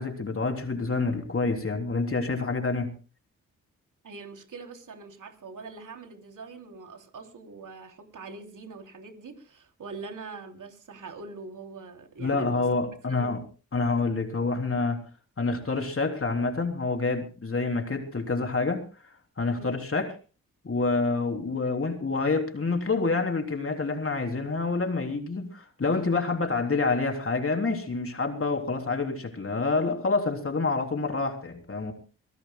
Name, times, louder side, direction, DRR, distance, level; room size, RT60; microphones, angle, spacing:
voice 1, 0.0-2.9 12.2-13.4 13.7-15.0 15.4-18.8 19.4-20.1 20.6-31.9, left 3 dB, 35° left, 4 dB, 3.6 m, -27 dB
voice 2, 4.0-13.4 19.5-19.7, right 4 dB, 55° right, 5 dB, 3.1 m, -43 dB
24.5 x 17.5 x 2.3 m, 0.35 s
hypercardioid pair, 40°, 37 cm